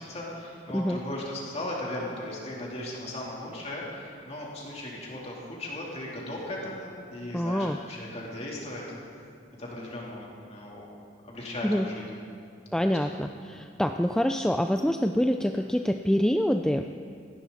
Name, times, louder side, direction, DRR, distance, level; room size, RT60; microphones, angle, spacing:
voice 1, 0.0-8.8 9.6-10.9 11.2-12.1 12.8-13.2, left 1 dB, 35° left, -4 dB, 3.4 m, -37 dB
voice 2, 7.3-7.8 11.6-11.9 12.7-16.9, equal, 5° left, 6 dB, 0.3 m, -26 dB
18.5 x 15.5 x 4.2 m, 2.4 s
head